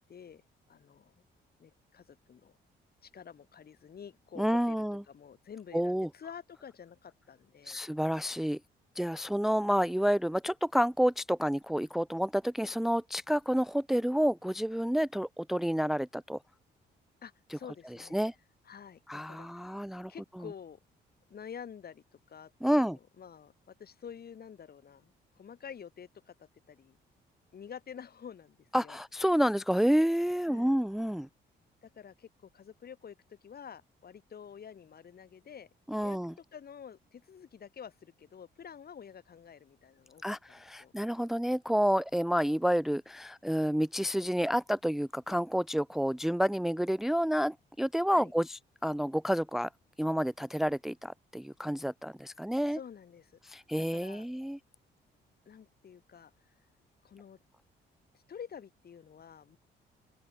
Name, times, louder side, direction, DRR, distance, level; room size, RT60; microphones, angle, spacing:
voice 1, 0.1-0.4 0.7-1.2 1.6-2.6 3.0-7.8 17.2-18.3 18.6-19.0 19.3-19.7 20.1-20.8 21.3-27.0 27.5-29.0 30.4-30.8 31.8-35.7 36.0-36.2 36.5-40.9 48.1-48.3 52.7-54.3 55.4-56.5 57.0-57.4 58.1-59.6, left 7 dB, 50° left, 4.9 m, -49 dB
voice 2, 4.4-5.0 5.7-6.1 7.7-8.6 9.0-16.4 17.5-17.6 18.1-18.3 19.1-20.1 22.6-23.0 28.7-31.3 35.9-36.3 40.2-49.7 50.0-52.8 53.4-54.6, equal, ahead, 0.6 m, -29 dB
open air
cardioid pair, 90°, 20 cm